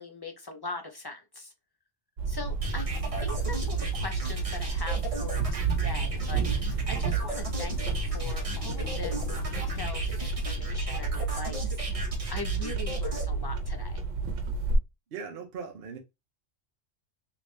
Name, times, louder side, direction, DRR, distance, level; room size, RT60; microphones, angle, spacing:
voice 1, 0.0-1.5 2.3-14.0, left 3 dB, 40° left, 0.3 m, -41 dB
sound 1, 2.2-14.8, right 4 dB, 85° right, 1.1 m, -30 dB
sound 2, 2.6-9.9, left 8 dB, 80° left, 1.0 m, -46 dB
sound 3, 2.6-13.2, equal, 30° right, 1.2 m, -38 dB
voice 2, 15.1-16.0, right 6 dB, 55° right, 0.8 m, -39 dB
3.2 x 2.8 x 3.2 m
omnidirectional pair, 1.3 m